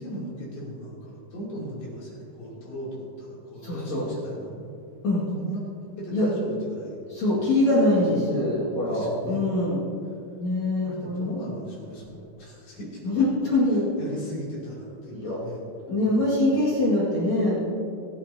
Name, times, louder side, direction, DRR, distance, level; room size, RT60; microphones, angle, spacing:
voice 1, 0.0-4.7 5.3-5.6 6.0-7.0 8.1-8.3 8.9-9.5 10.7-13.2 14.0-15.7 16.0-16.5, equal, 75° left, -6 dB, 5.0 m, -38 dB
voice 2, 3.6-4.1 5.0-5.2 6.1-6.3 7.1-9.8 10.4-11.4 13.0-13.9 15.1-15.4 15.9-17.6, left 1 dB, 50° left, -7 dB, 3.1 m, -23 dB
25.0 x 8.7 x 2.8 m, 2.6 s
omnidirectional pair, 4.4 m